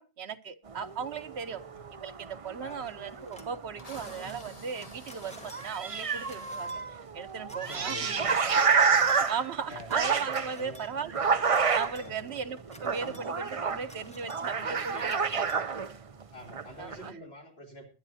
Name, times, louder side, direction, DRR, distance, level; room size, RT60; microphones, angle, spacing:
voice 1, 0.0-1.6 1.9-8.2 9.0-11.2 11.4-15.5 16.8-17.1, right 6 dB, 85° right, 9 dB, 1.2 m, -37 dB
sound 1, 0.7-5.0 5.2-5.3 5.5-16.2 16.5-17.1, right 5 dB, 35° right, 0.7 m, -29 dB
sound 2, 2.7-3.6 3.8-16.2, left 1 dB, 5° left, 1.8 m, -53 dB
Drill, 3.1-3.2 3.8-6.7 7.6-7.8, left 2 dB, 35° left, 1.6 m, -51 dB
voice 2, 7.5-8.6 9.7-9.9 10.5-10.8 12.0-12.3 13.0-13.2 14.5-15.3 16.3-17.9, left 1 dB, 75° left, 1 dB, 3.6 m, -46 dB
21.0 x 10.0 x 2.8 m, 0.33 s
omnidirectional pair, 1.0 m